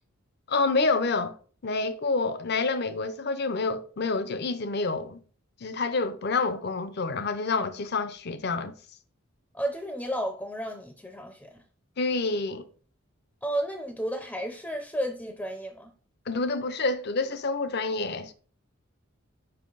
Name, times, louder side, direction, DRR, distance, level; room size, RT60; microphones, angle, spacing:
voice 1, 0.5-1.3 1.6-5.2 5.6-8.7 12.0-12.7 16.3-18.3, left 3 dB, 50° left, 0.6 m, -28 dB
voice 2, 9.5-11.6 13.4-15.9, right 1 dB, 10° left, 0.5 m, -32 dB
5.6 x 5.5 x 3.9 m
head